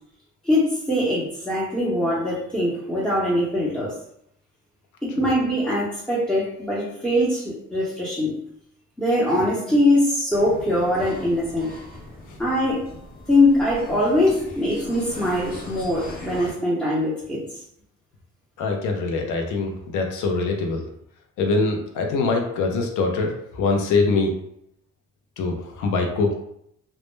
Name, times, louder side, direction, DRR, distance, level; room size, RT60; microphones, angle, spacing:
voice 1, 0.4-3.9 5.0-8.4 9.0-11.8 12.4-12.8 13.3-17.4, left 1 dB, 5° left, -9 dB, 0.7 m, -22 dB
sound 1, 10.3-16.5, left 2 dB, 30° left, 1.0 m, -40 dB
voice 2, 18.6-20.8 21.4-24.3 25.4-26.3, left 3 dB, 85° left, 3 dB, 0.6 m, -23 dB
2.1 x 2.0 x 3.1 m, 0.73 s
cardioid pair, 90°, 30 cm